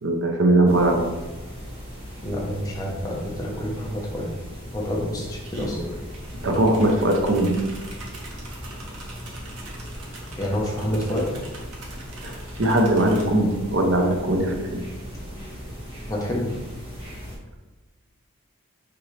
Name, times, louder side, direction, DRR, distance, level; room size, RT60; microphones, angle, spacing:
voice 1, 0.0-1.1 6.4-7.6 12.2-14.8, right 1 dB, 55° right, 3 dB, 0.7 m, -20 dB
sound 1, 0.7-17.4, equal, 25° right, 1.9 m, -38 dB
voice 2, 2.2-4.3 4.7-5.8 10.4-11.4 16.1-16.5, equal, 15° left, -3 dB, 1.0 m, -28 dB
sound 2, 5.4-13.3, right 1 dB, 90° right, 1.4 m, -42 dB
5.9 x 5.2 x 3.3 m, 1.2 s
head